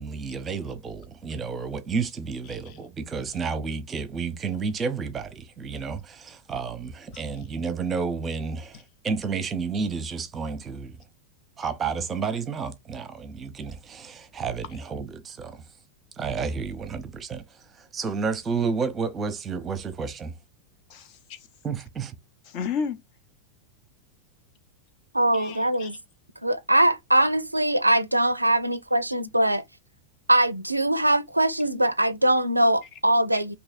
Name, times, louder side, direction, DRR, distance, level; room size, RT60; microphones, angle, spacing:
voice 1, 0.0-11.0 11.6-15.6 16.2-17.4 17.9-20.3 21.6-22.1, right 5 dB, 20° right, 0.7 m, -31 dB
voice 2, 2.5-2.8 7.1-7.2 20.9-21.4 22.5-23.0 25.3-25.9 33.3-33.4, left 6 dB, 40° left, 0.7 m, -33 dB
voice 3, 25.1-25.9 26.4-29.6 30.3-33.6, right 1 dB, 85° right, 0.4 m, -22 dB
3.1 x 2.8 x 4.0 m
figure-of-eight pair, 90°, 0 cm